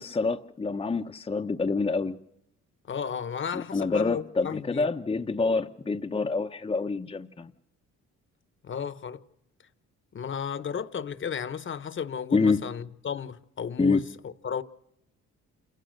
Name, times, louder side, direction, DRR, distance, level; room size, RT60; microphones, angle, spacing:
voice 1, 0.0-2.2 3.7-7.5 12.3-12.6 13.8-14.0, left 4 dB, 20° left, 0.7 m, -27 dB
voice 2, 2.9-4.9 8.6-9.2 10.1-14.6, left 7 dB, 40° left, 1.0 m, -34 dB
28.0 x 16.0 x 6.5 m
cardioid pair, 90°, 30 cm